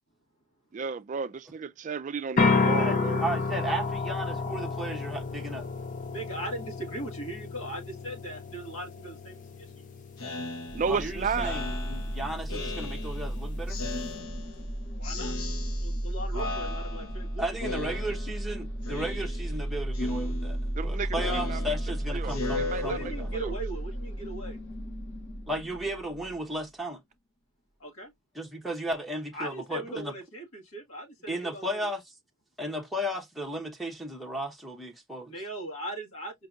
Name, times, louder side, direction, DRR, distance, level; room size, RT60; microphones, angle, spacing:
voice 1, 0.7-3.2 10.7-11.5 20.8-21.6 22.1-22.8, right 5 dB, 35° right, 0.3 m, -32 dB
sound 1, 2.4-14.1, left 4 dB, 35° left, 0.5 m, -32 dB
voice 2, 2.8-5.7 10.9-13.8 17.4-20.6 20.8-23.1 25.5-27.0 28.3-30.1 31.3-32.0 32.6-35.3, right 1 dB, ahead, 0.8 m, -34 dB
voice 3, 6.1-9.8 15.0-15.3 15.8-17.4 17.8-18.0 22.8-24.6 27.8-28.1 29.3-31.9 35.3-36.3, right 2 dB, 75° left, 1.6 m, -38 dB
Speech synthesizer, 10.2-13.3 13.7-14.7 15.0-16.1 16.3-17.3 17.6-18.5 18.8-19.6 19.9-23.5, left 3 dB, 90° left, 0.8 m, -37 dB
sound 2, 10.7-26.6, right 1 dB, 55° left, 1.1 m, -34 dB
5.2 x 2.7 x 2.4 m
head